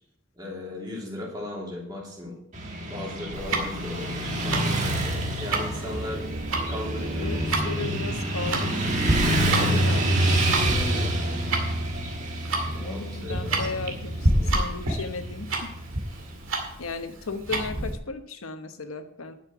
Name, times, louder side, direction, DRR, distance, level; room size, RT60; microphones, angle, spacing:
voice 1, 0.3-2.4 2.9-6.2 6.7-7.3 7.6-8.0 9.4-9.8 10.5-11.5 12.8-13.7 14.3-14.5 16.1-16.2, left 1 dB, 20° right, -3 dB, 3.0 m, -37 dB
Motorcycle / Traffic noise roadway noise, 2.5-16.6, right 1 dB, 35° right, 1.6 m, -28 dB
Tick-tock, 3.3-18.0, right 2 dB, 70° right, 2.2 m, -29 dB
voice 2, 6.9-8.8 9.6-10.5 10.8-11.1 12.8-15.7 16.8-19.3, left 4 dB, 90° left, 8 dB, 1.0 m, -35 dB
11.0 x 6.7 x 5.8 m, 0.74 s
head